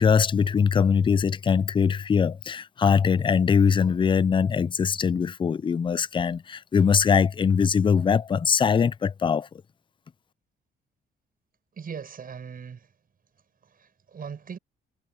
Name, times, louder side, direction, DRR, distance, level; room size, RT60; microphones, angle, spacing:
voice 1, 0.0-9.5, left 6 dB, 25° left, 0.4 m, -22 dB
voice 2, 11.7-12.9 13.6-14.6, right 6 dB, 45° right, 6.9 m, -39 dB
cardioid pair, 90°, 20 cm